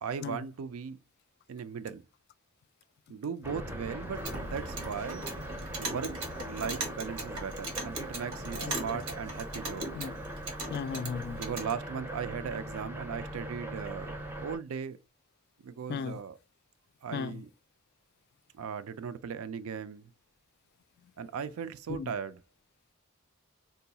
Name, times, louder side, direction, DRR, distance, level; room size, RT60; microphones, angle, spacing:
voice 1, 0.0-1.0 1.5-2.0 3.1-5.3 5.8-6.2 6.5-10.0 11.4-15.0 15.6-16.4 17.0-17.5 18.5-20.1 21.2-22.4, right 6 dB, 75° right, 0.4 m, -38 dB
sound 1, 3.4-14.6, equal, 10° right, 0.5 m, -40 dB
Clock, 4.0-11.7, right 2 dB, 90° right, 1.0 m, -40 dB
voice 2, 8.6-9.0 9.9-10.1 10.7-11.4 15.9-16.2 17.1-17.4 21.9-22.1, left 6 dB, 50° left, 0.3 m, -36 dB
3.8 x 2.2 x 2.7 m
head